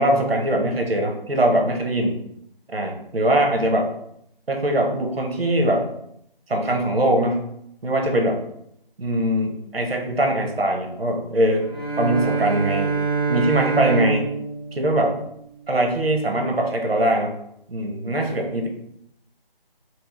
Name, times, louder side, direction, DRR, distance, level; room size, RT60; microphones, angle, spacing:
voice 1, 0.0-2.2 2.7-3.9 4.5-5.9 6.5-7.4 7.8-8.4 9.0-11.7 12.0-12.9 13.3-14.3 14.7-15.1 15.7-17.3 17.7-18.7, right 1 dB, 90° right, 2 dB, 1.0 m, -21 dB
Bowed string instrument, 11.6-15.8, right 4 dB, 25° left, 0.5 m, -26 dB
3.1 x 3.0 x 3.1 m, 0.74 s
figure-of-eight pair, 165°, 29 cm